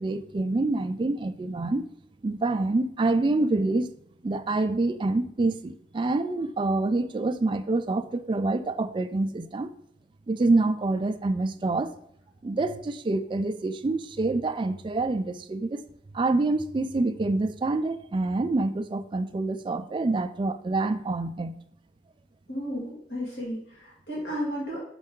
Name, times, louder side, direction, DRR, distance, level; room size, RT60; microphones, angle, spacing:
voice 1, 0.0-1.8 2.2-3.9 4.2-9.7 10.3-11.9 12.4-15.8 16.1-21.6, right 2 dB, 25° right, 0.3 m, -26 dB
voice 2, 22.5-24.8, equal, 65° left, 1.9 m, -33 dB
5.3 x 5.3 x 3.7 m
head